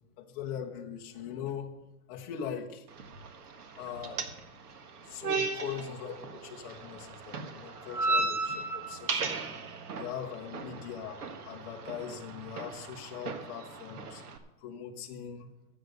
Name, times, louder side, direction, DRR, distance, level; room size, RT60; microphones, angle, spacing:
voice 1, 0.2-1.7 2.1-2.8 3.8-4.3 5.0-9.4 10.0-15.5, left 8 dB, 15° left, 0 dB, 0.5 m, -41 dB
sound 1, 2.9-14.4, right 3 dB, 85° right, 1.6 m, -36 dB
11.5 x 7.9 x 6.5 m, 0.94 s
hypercardioid pair, 165°, 44 cm